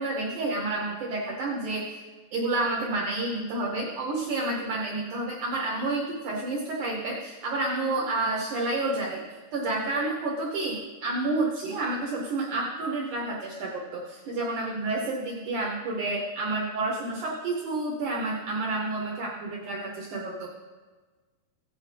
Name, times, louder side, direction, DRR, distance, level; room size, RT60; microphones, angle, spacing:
voice 1, 0.0-2.0 2.3-9.2 9.5-20.5, right 2 dB, 75° right, -2 dB, 1.9 m, -30 dB
16.0 x 8.8 x 3.3 m, 1.4 s
omnidirectional pair, 4.7 m